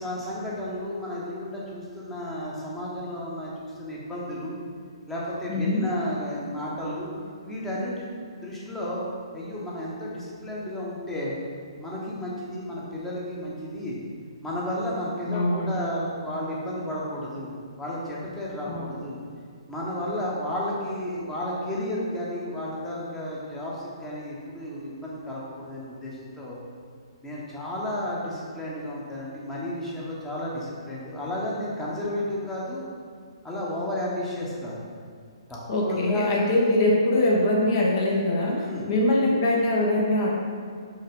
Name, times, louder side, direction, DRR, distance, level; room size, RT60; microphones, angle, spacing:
voice 1, 0.0-4.6 5.1-7.1 7.4-8.1 8.4-9.0 9.3-11.3 11.8-13.9 14.4-17.5 17.8-19.2 19.7-26.6 27.2-32.8 33.4-34.8 35.5-35.6 35.9-36.3 38.6-38.8, left 1 dB, 10° left, -6 dB, 1.2 m, -32 dB
voice 2, 5.5-5.8 15.3-15.8 18.7-18.9 35.7-40.3, left 1 dB, 45° left, -3 dB, 1.3 m, -23 dB
5.4 x 4.7 x 3.8 m, 2.1 s
hypercardioid pair, 145°, 3 cm